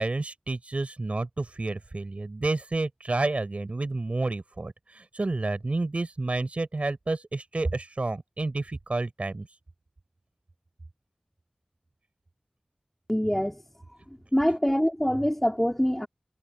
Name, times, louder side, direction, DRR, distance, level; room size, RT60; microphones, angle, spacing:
voice 1, 0.0-9.5, right 2 dB, 65° right, 3.8 m, -30 dB
voice 2, 13.1-13.6 14.3-16.1, equal, 10° left, 2.4 m, -24 dB
wide cardioid pair, 55°, 2 cm